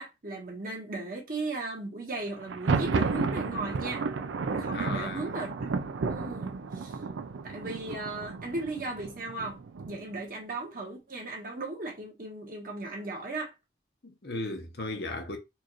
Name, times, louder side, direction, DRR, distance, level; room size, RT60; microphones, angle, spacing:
voice 1, 0.0-4.1 4.5-7.0 7.4-9.6 9.8-13.5, right 2 dB, 50° right, 1.3 m, -37 dB
Thunder, 2.4-10.2, right 4 dB, 85° right, 0.4 m, -32 dB
voice 2, 4.7-5.3 14.0-15.4, left 2 dB, 55° left, 0.9 m, -36 dB
4.4 x 2.5 x 3.0 m
head